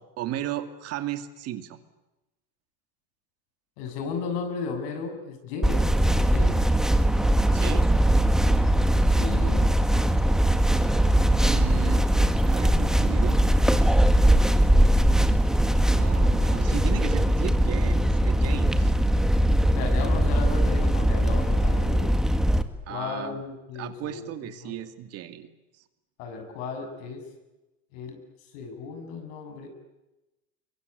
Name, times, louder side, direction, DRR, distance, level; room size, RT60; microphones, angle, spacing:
voice 1, 0.2-1.8 7.5-7.9 11.4-13.4 15.9-18.9 22.9-23.4 23.7-25.5, right 12 dB, 55° right, 8 dB, 2.5 m, -35 dB
voice 2, 3.8-6.6 9.0-9.7 19.7-22.1 22.9-24.7 26.2-27.2 27.9-28.2 28.5-29.7, left 5 dB, 75° left, 5 dB, 7.4 m, -35 dB
sound 1, 5.6-22.6, right 1 dB, ahead, 1.8 m, -21 dB
23.5 x 23.0 x 9.8 m, 1.0 s
supercardioid pair, 110°, 30 cm